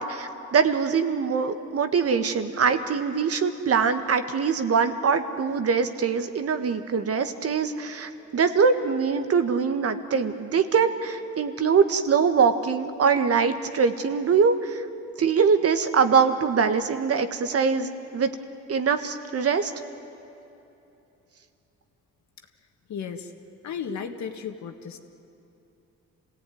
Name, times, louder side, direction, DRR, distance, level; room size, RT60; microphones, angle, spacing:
voice 1, 0.0-14.8 15.2-18.3 18.7-19.7, right 6 dB, 50° right, 8 dB, 1.5 m, -23 dB
voice 2, 22.9-23.3 23.6-25.0, left 6 dB, 65° left, 6 dB, 1.9 m, -34 dB
27.0 x 17.5 x 9.4 m, 2.9 s
cardioid pair, 90°, 30 cm